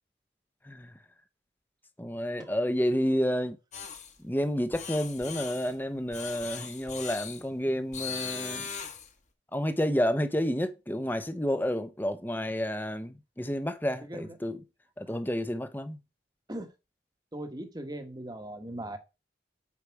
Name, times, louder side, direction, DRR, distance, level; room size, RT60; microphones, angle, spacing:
voice 1, 2.0-3.6 4.2-8.7 9.5-14.6 15.0-16.0, equal, 10° left, 0.8 m, -30 dB
sound 1, 3.7-4.1 4.7-5.7 6.1-7.4 7.9-9.1, left 7 dB, 40° left, 1.3 m, -39 dB
voice 2, 14.0-14.3 16.5-16.7 17.3-19.0, right 1 dB, 20° right, 1.2 m, -39 dB
8.5 x 5.7 x 4.7 m
head